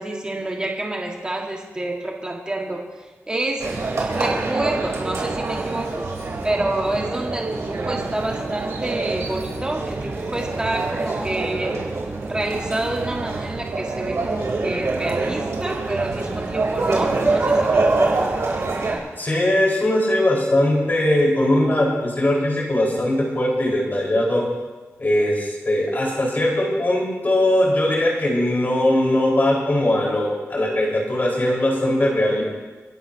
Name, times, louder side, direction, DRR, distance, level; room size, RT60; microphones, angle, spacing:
voice 1, 0.0-3.6 4.0-6.1 6.4-11.7 12.3-18.3, right 1 dB, 20° right, -1 dB, 1.9 m, -28 dB
sound 1, 3.6-19.0, right 3 dB, 75° right, 3.9 m, -25 dB
voice 2, 19.2-24.5 25.0-32.4, left 1 dB, 40° left, -3 dB, 4.9 m, -20 dB
29.5 x 12.0 x 2.9 m, 1.3 s
wide cardioid pair, 105°, 5 cm